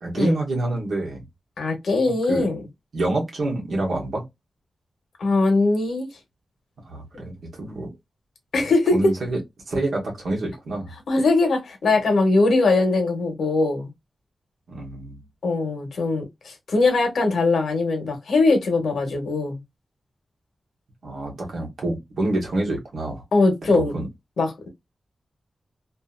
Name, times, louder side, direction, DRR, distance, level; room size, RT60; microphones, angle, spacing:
voice 1, 0.0-1.2 2.3-2.5 2.9-4.2 6.9-7.9 8.9-9.4 9.7-10.9 14.7-15.2 21.0-23.2 23.7-24.1, right 2 dB, 65° right, 1.2 m, -27 dB
voice 2, 1.6-2.6 5.2-6.1 8.5-9.1 11.1-13.9 15.4-19.6 23.3-23.9 24.4-24.7, left 3 dB, 90° left, 1.1 m, -21 dB
2.8 x 2.7 x 2.3 m
wide cardioid pair, 180°, 0 cm